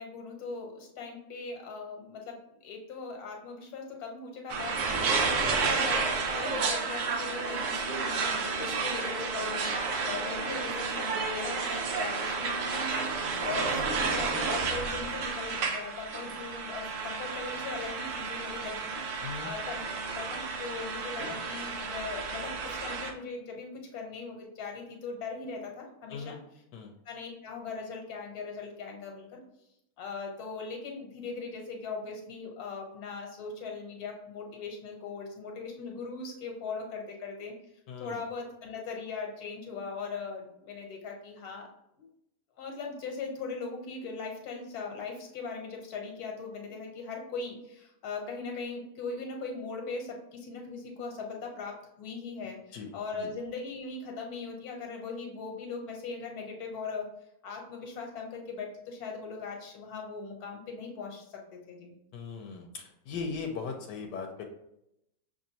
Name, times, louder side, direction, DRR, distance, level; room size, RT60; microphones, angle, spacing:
voice 1, 0.0-2.4 2.6-6.0 6.3-18.9 19.4-19.8 20.1-26.4 27.0-29.4 30.0-37.5 38.0-41.7 42.0-42.1 42.6-57.0 57.4-61.4 61.7-61.9, left 4 dB, 65° left, 1 dB, 1.4 m, -40 dB
sound 1, 4.5-23.1, right 4 dB, 65° right, 0.8 m, -31 dB
voice 2, 37.9-38.2 52.7-52.9 53.2-53.3 62.1-64.4, left 5 dB, 90° left, 3 dB, 1.2 m, -38 dB
6.1 x 3.0 x 2.8 m, 0.81 s
omnidirectional pair, 1.8 m